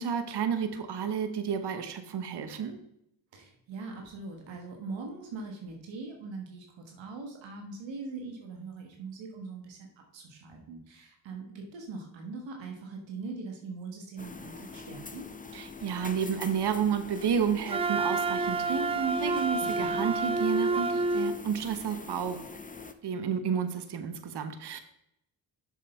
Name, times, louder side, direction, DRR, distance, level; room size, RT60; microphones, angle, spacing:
voice 1, 0.0-2.8 15.5-22.4 23.0-24.8, right 7 dB, 65° right, 9 dB, 1.1 m, -31 dB
voice 2, 3.3-9.9 10.1-15.3 19.6-20.0, right 3 dB, 85° right, 2 dB, 1.4 m, -41 dB
sound 1, 14.2-22.9, left 3 dB, 20° left, 0.8 m, -44 dB
Wind instrument woodwind instrument, 17.7-21.4, right 3 dB, 15° right, 0.4 m, -28 dB
7.4 x 6.4 x 4.4 m, 0.77 s
supercardioid pair, 50°, 44 cm